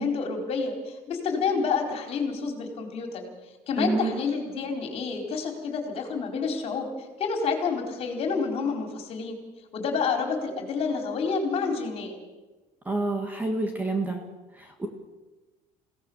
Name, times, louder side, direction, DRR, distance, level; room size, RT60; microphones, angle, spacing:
voice 1, 0.0-3.2 3.7-6.9 7.2-9.4 9.7-12.2, left 5 dB, 40° left, 3 dB, 4.4 m, -29 dB
voice 2, 3.8-4.1 12.8-14.2 14.6-14.9, right 2 dB, 10° right, 3 dB, 1.8 m, -28 dB
29.0 x 17.5 x 7.3 m, 1.2 s
cardioid pair, 180°, 16 cm